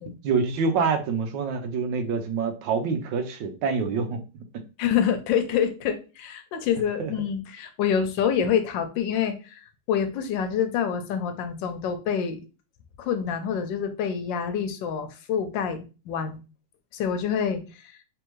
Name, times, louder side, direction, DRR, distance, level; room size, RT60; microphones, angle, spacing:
voice 1, 0.2-4.2 7.0-7.1, right 5 dB, 90° right, 8 dB, 1.4 m, -26 dB
voice 2, 4.8-9.6 9.9-12.4 13.0-16.4 16.9-17.9, left 8 dB, 90° left, 8 dB, 1.4 m, -27 dB
3.4 x 3.4 x 3.1 m, 0.32 s
omnidirectional pair, 1.9 m